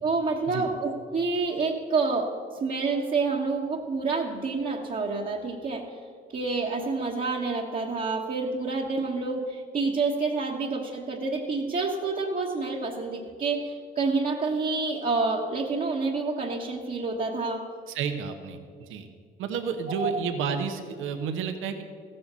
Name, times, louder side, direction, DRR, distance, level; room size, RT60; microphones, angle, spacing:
voice 1, 0.0-2.3 2.6-5.9 6.3-17.6 20.0-20.1, right 3 dB, 45° right, -2 dB, 1.2 m, -28 dB
voice 2, 17.9-19.1 19.4-21.8, right 6 dB, 90° right, 6 dB, 1.1 m, -31 dB
15.0 x 7.9 x 6.8 m, 2.1 s
cardioid pair, 90°, 20 cm